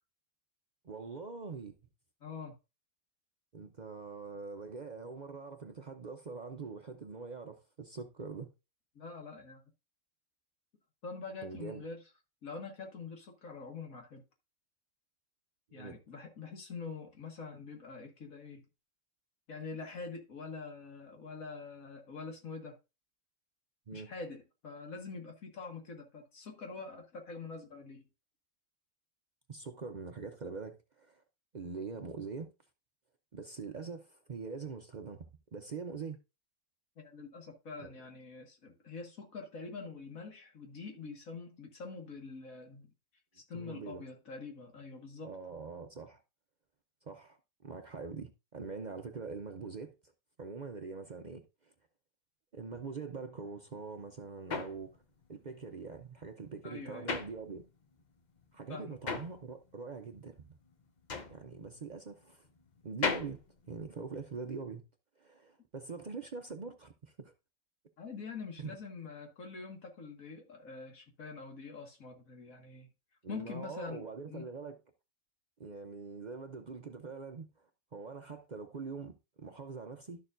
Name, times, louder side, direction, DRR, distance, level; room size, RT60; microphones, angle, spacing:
voice 1, 0.8-1.8 3.5-8.5 11.4-11.8 15.7-16.0 23.9-24.1 29.5-31.2 31.5-32.5 33.3-35.3 35.5-36.2 37.8-37.9 43.5-44.0 45.2-46.2 47.0-49.9 50.4-51.7 52.5-55.0 55.3-57.6 58.5-60.5 61.3-62.5 62.8-63.4 63.7-64.8 65.2-67.3 68.6-68.7 73.2-74.8 75.6-77.5 77.9-80.2, right 4 dB, 45° right, 0.6 m, -43 dB
voice 2, 2.2-2.6 9.0-9.6 11.0-12.0 12.4-14.2 15.7-18.6 19.5-22.8 23.9-28.1 37.0-42.9 43.3-45.3 56.6-57.1 58.7-59.1 68.0-72.9 73.3-74.5, left 4 dB, 85° left, 2.1 m, -45 dB
sound 1, 53.7-58.0 58.3-64.5, left 4 dB, 40° left, 0.7 m, -39 dB
12.0 x 6.7 x 2.5 m
omnidirectional pair, 1.4 m